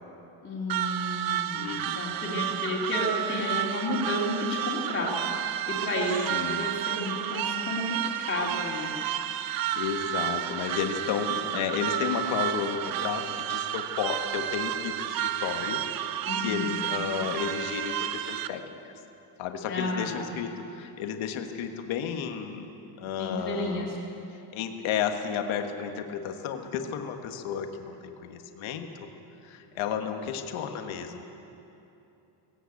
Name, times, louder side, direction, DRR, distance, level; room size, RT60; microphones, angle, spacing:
voice 1, 0.4-9.0 16.2-16.8 19.7-20.3 23.2-24.0, left 1 dB, 25° left, -5 dB, 2.8 m, -32 dB
sound 1, 0.7-18.5, right 11 dB, 45° right, 0.6 m, -31 dB
voice 2, 1.5-2.1 6.3-6.7 9.8-18.6 19.4-22.7 23.0-23.9 24.5-29.1 29.4-31.2, left 7 dB, 70° left, 5 dB, 1.6 m, -32 dB
18.0 x 17.5 x 8.4 m, 2.9 s
cardioid pair, 180°, 49 cm